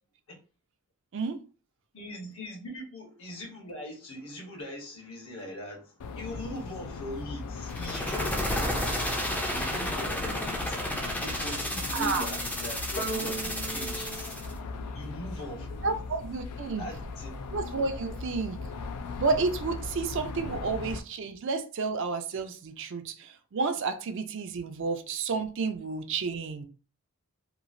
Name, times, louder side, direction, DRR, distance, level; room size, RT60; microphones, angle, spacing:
voice 1, 1.9-14.4 14.9-16.0 16.8-17.4, left 1 dB, 65° left, 1.1 m, -41 dB
sound 1, 6.0-21.0, left 4 dB, 90° left, 0.4 m, -39 dB
sound 2, 7.7-14.5, left 1 dB, 5° left, 0.4 m, -32 dB
voice 2, 11.9-12.3 15.8-16.8 17.5-18.6 19.2-26.7, right 4 dB, 55° right, 0.4 m, -31 dB
sound 3, 13.0-15.6, right 3 dB, 50° left, 0.8 m, -38 dB
2.9 x 2.4 x 2.5 m
head